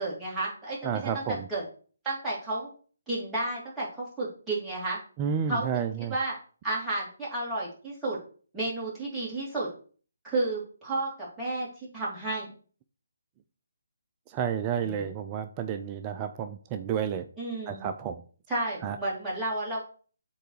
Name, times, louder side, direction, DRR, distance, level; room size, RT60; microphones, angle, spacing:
voice 1, 0.0-1.6 2.0-2.7 3.1-5.0 5.5-6.3 6.6-8.2 8.5-9.7 10.3-11.1 11.4-11.7 11.9-12.5 14.8-15.1 17.4-17.9 18.5-19.8, right 2 dB, 5° right, -7 dB, 2.8 m, -32 dB
voice 2, 0.8-1.5 5.2-6.1 14.3-17.3 17.7-18.2 18.8-19.0, right 8 dB, 25° right, 8 dB, 0.4 m, -31 dB
7.8 x 3.4 x 4.7 m, 0.41 s
figure-of-eight pair, 145°, 0 cm